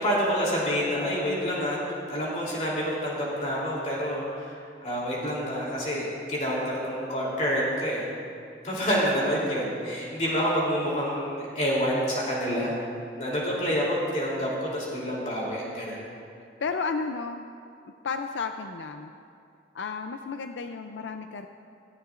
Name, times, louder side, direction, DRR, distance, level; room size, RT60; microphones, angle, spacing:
voice 1, 0.0-1.8 2.1-4.5 4.8-8.1 8.6-12.7 13.2-16.0, equal, 40° left, -5 dB, 3.2 m, -28 dB
voice 2, 16.6-17.5 18.0-19.1 19.7-21.5, left 4 dB, 85° left, 7 dB, 0.4 m, -32 dB
17.5 x 14.5 x 2.5 m, 2.4 s
head